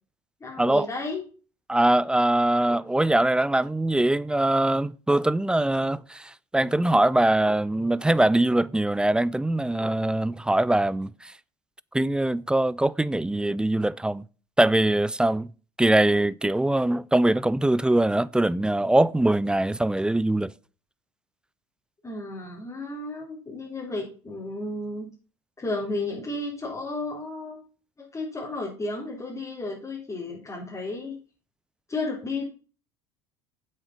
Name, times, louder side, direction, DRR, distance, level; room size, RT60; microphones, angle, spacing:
voice 1, 0.4-1.2 22.0-25.1 25.6-27.6 28.0-31.2 31.9-32.5, left 2 dB, 20° left, 3.7 m, -33 dB
voice 2, 1.7-11.3 11.9-14.2 14.6-15.5 15.8-20.5, right 1 dB, 5° right, 0.4 m, -22 dB
8.0 x 7.5 x 6.0 m
hypercardioid pair, 70°, 16 cm